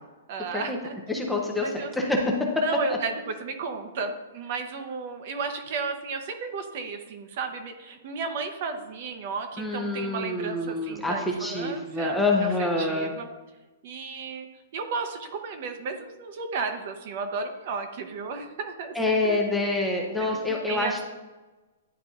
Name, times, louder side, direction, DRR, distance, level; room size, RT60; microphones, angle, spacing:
voice 1, 0.3-1.0 1.6-1.9 2.6-13.3 13.8-14.5 14.7-19.4 20.2-20.3 20.7-21.0, right 4 dB, 45° right, 7 dB, 0.7 m, -33 dB
voice 2, 1.1-2.5 2.9-3.0 9.6-13.1 18.9-21.0, left 2 dB, ahead, -1 dB, 0.6 m, -26 dB
10.0 x 3.9 x 2.4 m, 1.2 s
hypercardioid pair, 165°, 0 cm